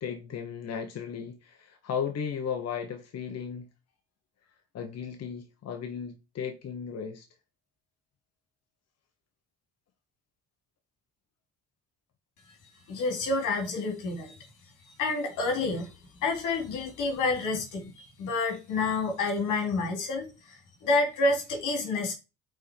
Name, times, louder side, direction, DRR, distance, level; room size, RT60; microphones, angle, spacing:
voice 1, 0.0-3.7 4.7-7.3, left 7 dB, 55° left, 1.2 m, -35 dB
voice 2, 12.9-14.5 15.0-15.9 16.2-22.1, left 3 dB, 90° left, 2.9 m, -29 dB
6.3 x 4.3 x 5.1 m
cardioid pair, 90°, 30 cm